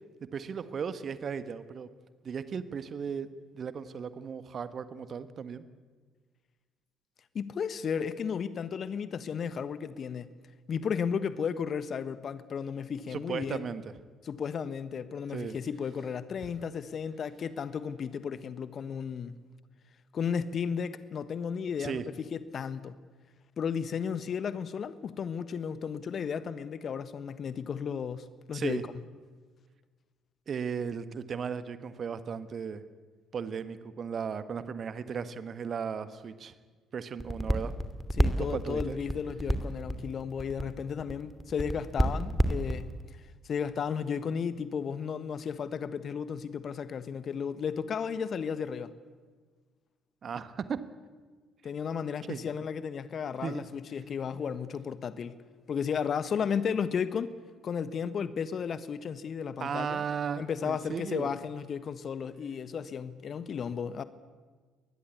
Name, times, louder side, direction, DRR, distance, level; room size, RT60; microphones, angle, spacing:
voice 1, 0.2-1.9 2.2-3.3 3.5-5.6 13.1-13.8 15.3-15.6 16.4-16.5 21.8-22.0 28.5-28.8 30.5-32.8 33.3-36.5 36.9-37.7 38.4-39.0 50.2-50.8 52.3-52.4 53.4-53.6 59.6-61.3, right 6 dB, 40° right, 13 dB, 1.6 m, -36 dB
voice 2, 7.3-10.3 10.7-13.7 14.2-19.4 20.1-23.0 23.6-28.8 38.2-43.0 43.4-48.9 51.6-55.4 55.7-57.3 57.6-60.0 60.4-64.0, left 7 dB, 45° left, 15 dB, 1.3 m, -34 dB
sound 1, 37.2-43.0, equal, ahead, 2.8 m, -28 dB
24.5 x 20.5 x 8.3 m, 1.4 s
figure-of-eight pair, 50°, 0 cm